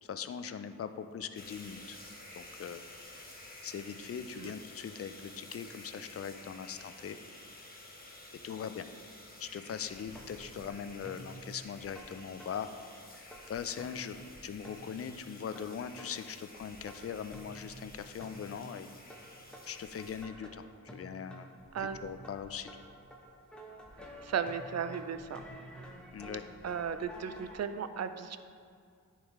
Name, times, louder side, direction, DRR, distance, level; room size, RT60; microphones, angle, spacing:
voice 1, 0.0-2.0 2.4-2.8 3.6-7.2 8.4-8.9 9.4-12.7 13.1-18.9 19.7-20.6 20.9-21.5 21.8-22.7 26.1-26.4, left 7 dB, 40° left, 10 dB, 0.4 m, -41 dB
sound 1, 1.3-20.2, left 1 dB, 25° left, 1.1 m, -52 dB
sound 2, 9.9-13.0 13.3-27.6, equal, 5° left, 1.0 m, -51 dB
voice 2, 24.0-25.4 26.6-28.4, right 7 dB, 50° right, 11 dB, 0.4 m, -36 dB
10.0 x 3.7 x 3.1 m, 2.2 s
cardioid pair, 50°, 35 cm